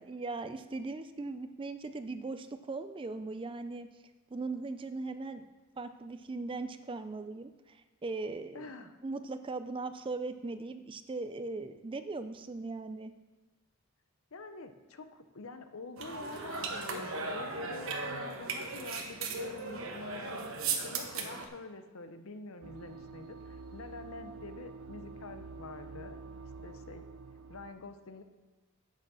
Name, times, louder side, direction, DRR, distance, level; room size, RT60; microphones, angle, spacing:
voice 1, 0.0-3.9 4.3-5.4 5.8-8.6 9.0-13.1, right 3 dB, 25° right, 10 dB, 0.3 m, -39 dB
voice 2, 8.5-9.0 14.3-20.5 20.8-26.2 26.6-27.1 27.5-28.2, left 3 dB, 65° left, 8 dB, 0.7 m, -46 dB
sound 1, 16.0-21.5, right 4 dB, 65° right, 1.1 m, -37 dB
sound 2, 22.6-27.7, right 4 dB, 90° right, 0.7 m, -47 dB
8.5 x 6.3 x 6.3 m, 1.2 s
head